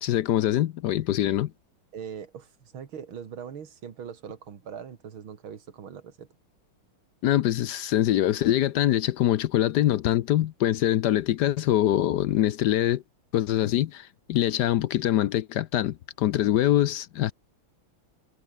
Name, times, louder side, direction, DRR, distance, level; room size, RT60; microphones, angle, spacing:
voice 1, 0.0-1.5 7.2-13.0 13.3-17.3, left 13 dB, 70° left, 1.0 m, -24 dB
voice 2, 1.9-6.3, right 7 dB, 70° right, 2.8 m, -41 dB
omnidirectional pair, 2.4 m